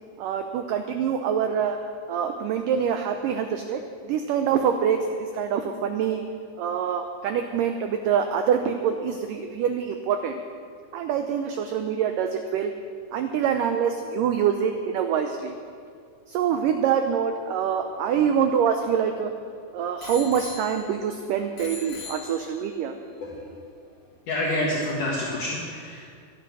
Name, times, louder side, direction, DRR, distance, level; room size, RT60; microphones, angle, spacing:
voice 1, 0.2-1.8 2.1-6.2 6.6-10.4 10.9-12.7 13.1-15.6 16.3-19.3 19.7-22.9, right 7 dB, 90° right, 6 dB, 1.9 m, -25 dB
Bicycle bell, 17.7-19.4 20.0-21.2 21.6-22.8 23.6-23.7, left 4 dB, 75° left, 4.4 m, -42 dB
voice 2, 24.3-26.0, left 1 dB, 60° left, -4 dB, 2.8 m, -28 dB
14.5 x 12.0 x 6.1 m, 2.2 s
omnidirectional pair, 4.7 m